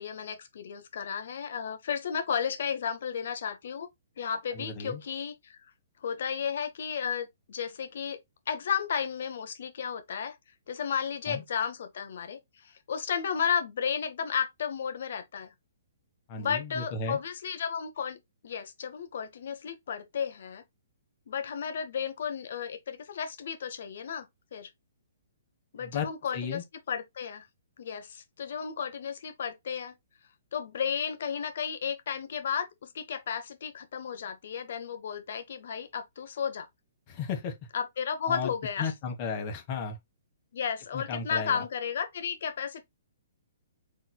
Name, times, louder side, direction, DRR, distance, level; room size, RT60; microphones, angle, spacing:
voice 1, 0.0-3.9 4.2-5.7 6.0-8.2 8.5-10.4 10.7-15.5 16.4-20.6 21.3-24.3 24.5-24.7 25.7-26.6 26.9-27.5 27.8-29.9 30.5-36.7 37.7-38.9 40.5-42.8, left 7 dB, 60° left, 1.1 m, -33 dB
voice 2, 4.5-5.0 11.3-11.4 16.3-17.2 25.8-26.1 26.3-26.6 37.1-37.6 38.3-38.5 38.8-40.0 40.9-41.6, left 5 dB, 40° left, 1.4 m, -34 dB
4.3 x 3.7 x 2.3 m
hypercardioid pair, 130°, 0 cm